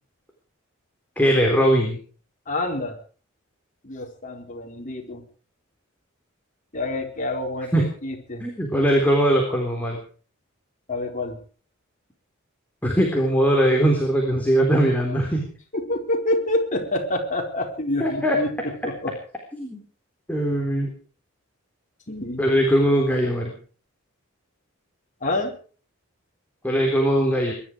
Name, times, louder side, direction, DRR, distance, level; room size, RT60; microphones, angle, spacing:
voice 1, 1.2-2.0 7.7-7.9 8.4-10.0 12.8-15.5 18.0-18.4 19.6-19.8 20.3-20.9 22.4-23.6 26.6-27.5, equal, 10° left, -1 dB, 3.8 m, -20 dB
voice 2, 2.5-3.0 3.8-5.3 6.7-8.5 10.9-11.4 15.7-19.1 22.1-22.4 25.2-25.5, left 1 dB, 40° left, 1 dB, 4.6 m, -27 dB
22.5 x 12.5 x 5.0 m, 0.41 s
head